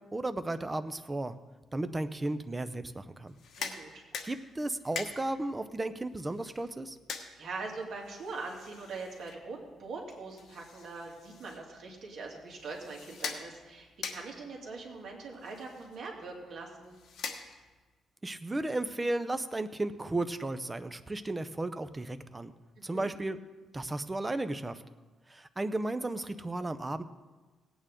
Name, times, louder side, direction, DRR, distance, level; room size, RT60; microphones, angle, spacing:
voice 1, 0.0-1.4 1.7-3.4 4.2-7.0 18.2-22.5 22.8-23.4 23.7-24.8 25.3-27.0, right 2 dB, 15° right, 11 dB, 0.6 m, -34 dB
sound 1, 3.2-17.9, left 5 dB, 65° left, 1.2 m, -45 dB
voice 2, 3.6-4.0 7.3-17.0 22.8-23.1, right 3 dB, 60° right, -2 dB, 2.7 m, -42 dB
18.5 x 9.0 x 3.7 m, 1.3 s
cardioid pair, 130°, 0 cm